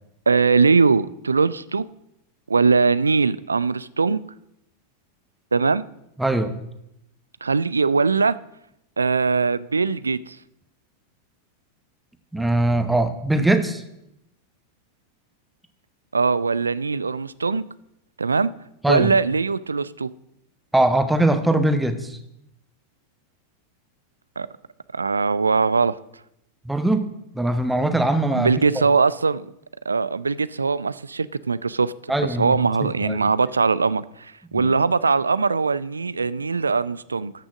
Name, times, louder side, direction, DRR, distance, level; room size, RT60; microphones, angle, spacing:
voice 1, 0.3-1.8 2.5-4.2 5.5-5.9 7.4-8.4 9.0-10.4 16.1-17.6 18.2-18.5 18.9-20.1 24.4-24.5 24.9-26.0 28.3-29.5 29.9-31.9 32.2-37.3, right 4 dB, 75° right, 18 dB, 0.3 m, -21 dB
voice 2, 6.2-6.6 12.3-13.8 18.8-19.1 20.7-22.2 26.6-27.1 27.3-28.5 32.1-33.2 34.6-34.7, right 1 dB, 5° right, 9 dB, 1.0 m, -21 dB
13.5 x 6.3 x 6.0 m, 0.82 s
figure-of-eight pair, 90°, 0 cm